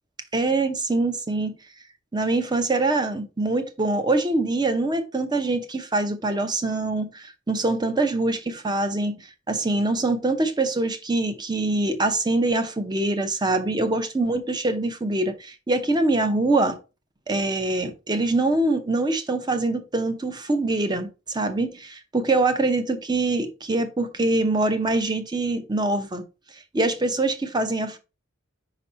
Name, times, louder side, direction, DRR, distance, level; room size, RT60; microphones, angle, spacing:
voice 1, 0.3-1.5 2.1-16.8 17.3-26.2 26.7-28.0, right 2 dB, 20° right, 0.7 m, -24 dB
5.4 x 4.1 x 4.2 m
head